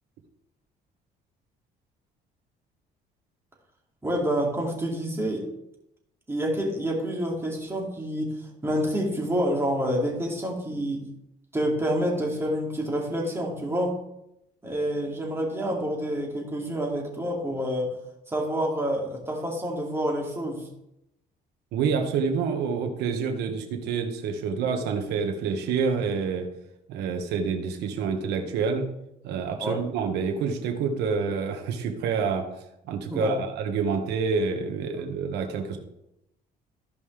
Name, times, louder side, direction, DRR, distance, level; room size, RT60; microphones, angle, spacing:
voice 1, 4.0-5.5 6.3-11.1 11.5-14.0 14.6-18.0 18.3-20.7 29.6-29.8 33.1-33.5, equal, 15° right, -1 dB, 2.5 m, -28 dB
voice 2, 21.7-26.5 26.9-28.9 29.2-32.4 32.9-35.8, right 5 dB, 85° right, 4 dB, 1.5 m, -27 dB
15.0 x 5.4 x 3.4 m, 0.83 s
cardioid pair, 110°, 17 cm